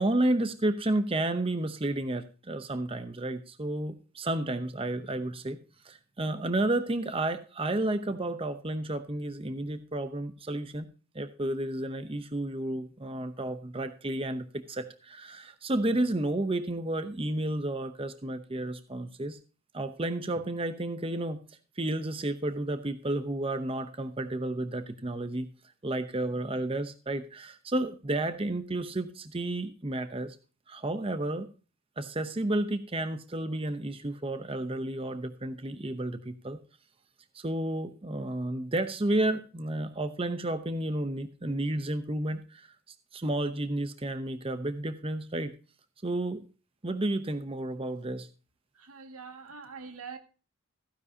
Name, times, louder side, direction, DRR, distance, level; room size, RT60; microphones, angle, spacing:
voice 1, 0.0-5.6 5.8-10.9 11.1-19.4 19.7-21.4 21.8-25.5 25.8-30.4 30.7-31.5 32.0-36.6 37.3-42.7 43.1-45.6 46.0-46.5 46.8-48.3, right 1 dB, 25° right, 0.7 m, -31 dB
voice 2, 48.7-50.2, right 5 dB, 85° right, 1.9 m, -44 dB
15.0 x 10.0 x 2.8 m
head